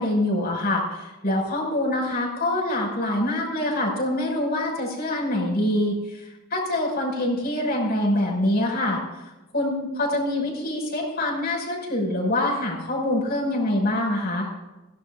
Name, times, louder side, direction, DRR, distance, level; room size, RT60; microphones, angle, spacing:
voice 1, 0.0-5.9 6.5-9.0 9.5-14.5, left 1 dB, 50° left, -1 dB, 6.2 m, -25 dB
22.0 x 18.0 x 2.6 m, 1.0 s
head